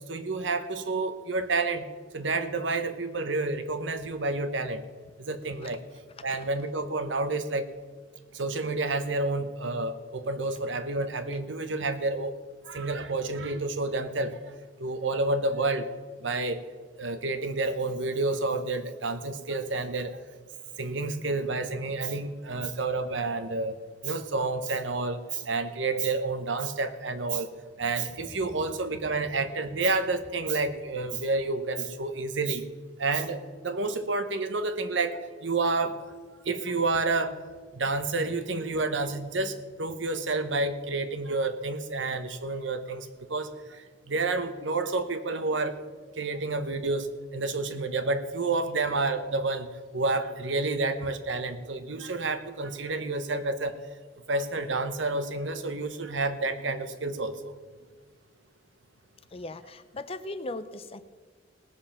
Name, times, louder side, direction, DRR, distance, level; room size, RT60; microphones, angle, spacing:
voice 1, 0.1-1.8 2.1-4.8 5.2-5.8 6.2-7.7 8.3-12.3 12.7-14.4 14.8-15.8 16.2-16.6 17.0-20.2 20.8-23.8 24.0-27.5 27.8-32.6 33.0-35.9 36.5-37.3 37.7-43.5 44.1-45.8 46.2-47.1 47.3-49.7 49.9-53.7 54.3-57.5, right 3 dB, 75° right, 10 dB, 1.0 m, -29 dB
voice 2, 59.3-61.0, left 2 dB, 30° left, 11 dB, 0.6 m, -38 dB
19.0 x 7.2 x 5.8 m, 1.5 s
head